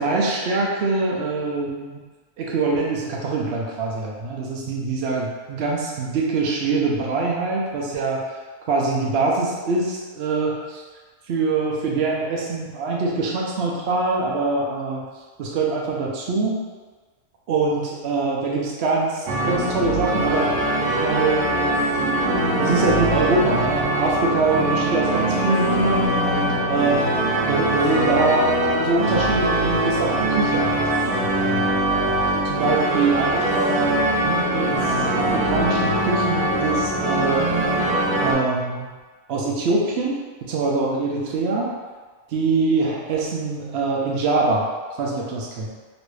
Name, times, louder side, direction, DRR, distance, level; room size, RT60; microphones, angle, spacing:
voice 1, 0.0-2.0 2.4-8.2 8.7-10.8 11.3-15.0 15.4-16.6 17.5-20.6 20.9-21.8 22.6-27.1 27.5-30.8 31.1-37.5 38.2-38.9 39.3-41.7 42.3-44.7 45.0-45.7, right 3 dB, 60° right, -2 dB, 0.7 m, -24 dB
sound 1, 19.3-38.3, right 1 dB, 85° right, 1.1 m, -22 dB
3.0 x 2.6 x 3.2 m, 1.4 s
omnidirectional pair, 1.5 m